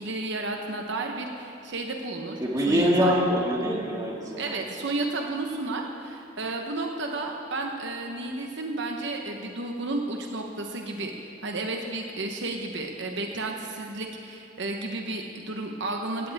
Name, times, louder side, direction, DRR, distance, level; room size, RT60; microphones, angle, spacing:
voice 1, 0.0-3.1 4.4-16.3, right 2 dB, 65° right, 2 dB, 1.0 m, -32 dB
voice 2, 2.4-4.6, equal, 20° right, -2 dB, 2.1 m, -24 dB
16.5 x 16.0 x 3.5 m, 2.6 s
head